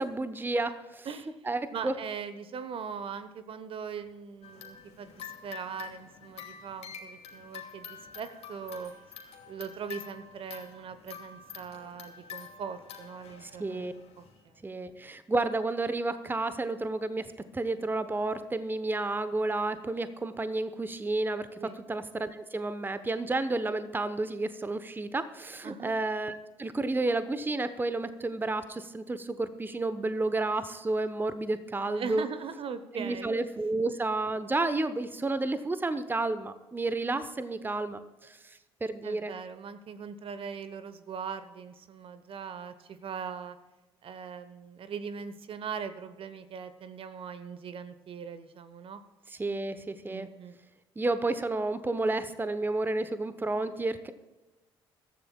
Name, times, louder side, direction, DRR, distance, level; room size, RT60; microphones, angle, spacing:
voice 1, 0.0-1.1 1.5-1.9 13.4-13.9 14.6-32.3 33.0-38.4 38.8-39.3 49.4-50.3 51.0-54.1, right 2 dB, 15° right, 12 dB, 0.9 m, -31 dB
voice 2, 1.0-8.9 9.5-13.9 14.2-14.5 21.6-21.8 25.6-25.9 31.9-33.3 39.0-43.6 44.0-49.0 50.1-50.6, right 6 dB, 45° right, 12 dB, 1.0 m, -40 dB
sound 1, 4.4-14.4, left 7 dB, 50° left, 2.4 m, -47 dB
22.5 x 13.5 x 2.3 m, 1.1 s
figure-of-eight pair, 50°, 13 cm